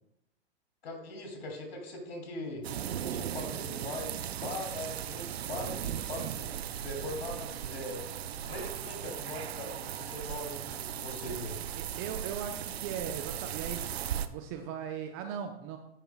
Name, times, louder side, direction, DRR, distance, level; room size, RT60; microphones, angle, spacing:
voice 1, 0.8-2.7 3.1-8.0 8.5-11.6, left 2 dB, 60° left, 1 dB, 2.8 m, -41 dB
sound 1, 2.6-14.3, right 10 dB, 65° right, 0.6 m, -37 dB
voice 2, 11.2-14.0 14.3-15.8, right 8 dB, 20° right, 5 dB, 0.4 m, -39 dB
11.0 x 5.3 x 2.3 m, 0.84 s
hypercardioid pair, 115°, 33 cm